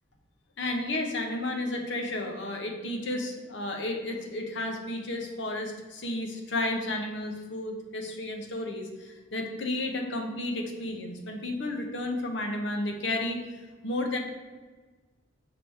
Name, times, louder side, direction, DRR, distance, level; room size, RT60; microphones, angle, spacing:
voice 1, 0.6-14.2, left 2 dB, 65° left, 3 dB, 0.9 m, -32 dB
5.9 x 3.5 x 4.6 m, 1.3 s
head